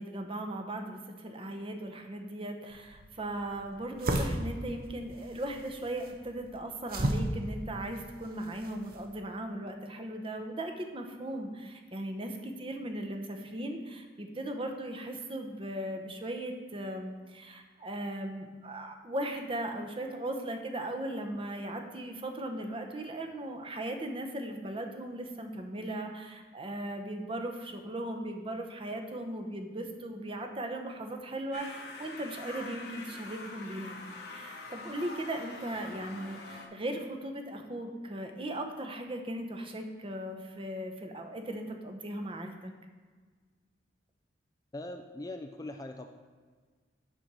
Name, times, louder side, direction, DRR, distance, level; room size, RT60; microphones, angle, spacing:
voice 1, 0.0-34.0 34.3-42.7, right 1 dB, 30° right, 4 dB, 0.9 m, -38 dB
sound 1, 2.7-9.1, right 1 dB, 55° right, 0.8 m, -36 dB
sound 2, 31.5-36.7, left 3 dB, 60° left, 1.0 m, -45 dB
voice 2, 44.7-46.1, left 2 dB, 20° left, 6 dB, 0.4 m, -41 dB
7.8 x 4.3 x 6.1 m, 1.5 s
head